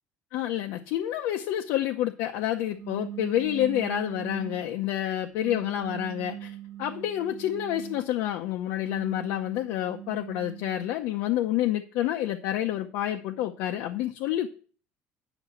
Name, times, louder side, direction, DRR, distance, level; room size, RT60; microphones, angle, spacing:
voice 1, 0.3-14.5, left 12 dB, 85° left, 4 dB, 0.7 m, -29 dB
sound 1, 2.7-4.8 5.4-8.1 8.6-10.9, right 11 dB, 30° right, 1.2 m, -41 dB
10.0 x 5.9 x 5.7 m, 0.39 s
cardioid pair, 175°, 4 cm